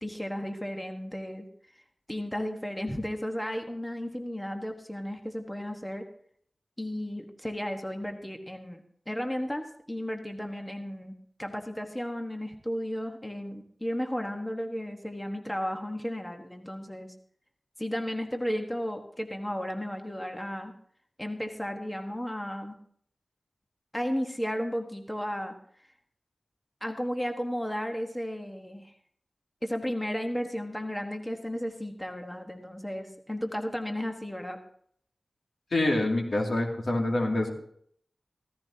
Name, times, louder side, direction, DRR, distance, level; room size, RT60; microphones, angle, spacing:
voice 1, 0.0-1.5 2.1-6.1 6.8-17.1 17.8-20.7 21.2-22.7 23.9-25.5 26.8-28.9 29.6-34.6, equal, 10° left, 4 dB, 1.3 m, -34 dB
voice 2, 35.7-37.5, left 1 dB, 75° left, 0 dB, 2.5 m, -26 dB
15.5 x 14.5 x 2.8 m, 0.63 s
wide cardioid pair, 75°, 0 cm